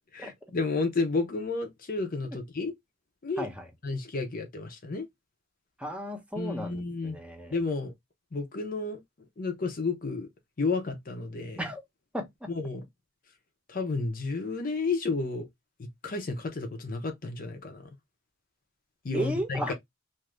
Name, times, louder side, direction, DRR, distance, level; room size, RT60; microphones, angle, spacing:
voice 1, 0.1-2.7 3.2-3.5 3.8-5.1 6.4-7.2 7.5-7.9 8.3-9.0 9.4-10.3 10.6-11.6 12.5-12.8 13.7-15.5 15.8-17.8 19.0-19.7, left 3 dB, 45° left, 0.6 m, -31 dB
voice 2, 3.4-3.7 5.8-7.5 11.6-11.8 12.1-12.5 19.1-19.7, equal, 5° right, 0.8 m, -34 dB
2.6 x 2.4 x 3.1 m
head